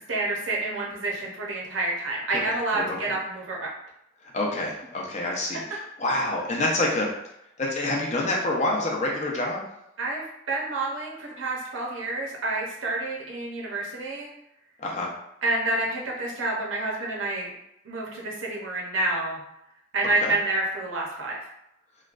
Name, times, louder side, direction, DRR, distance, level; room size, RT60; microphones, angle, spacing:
voice 1, 0.1-3.7 10.0-14.3 15.4-17.5 17.8-19.4 19.9-21.4, right 2 dB, 80° right, -3 dB, 0.7 m, -28 dB
voice 2, 4.2-7.1 7.6-9.7 14.8-15.1 20.2-20.3, left 2 dB, 35° left, -2 dB, 0.5 m, -27 dB
3.0 x 2.2 x 2.4 m, 0.81 s
head